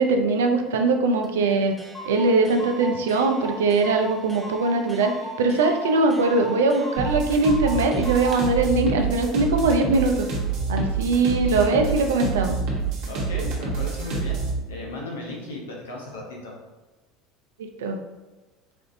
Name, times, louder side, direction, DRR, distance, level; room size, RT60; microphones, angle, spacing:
voice 1, 0.0-1.7 2.1-5.1 5.4-10.3 10.7-12.6 17.6-18.0, right 3 dB, 85° right, 5 dB, 0.4 m, -21 dB
Clock, 1.2-1.3 1.5-1.6 1.8-8.4, right 1 dB, 10° left, 0.7 m, -37 dB
sound 1, 7.0-14.6, right 4 dB, 60° right, 0.9 m, -27 dB
voice 2, 13.1-14.4 14.7-16.5, left 2 dB, 90° left, -1 dB, 0.8 m, -35 dB
4.3 x 2.5 x 2.5 m, 1.1 s
hypercardioid pair, 80°, 0 cm